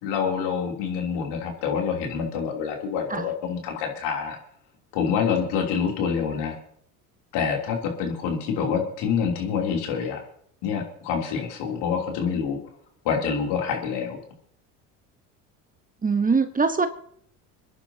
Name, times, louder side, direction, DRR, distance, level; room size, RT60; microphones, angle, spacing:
voice 1, 0.0-4.4 4.9-6.5 7.3-10.2 10.6-12.6 13.0-14.2, left 6 dB, 65° left, 1 dB, 3.2 m, -26 dB
voice 2, 16.0-16.9, right 4 dB, 20° right, 9 dB, 1.0 m, -22 dB
28.0 x 10.5 x 2.8 m, 0.64 s
hypercardioid pair, 70°, 45 cm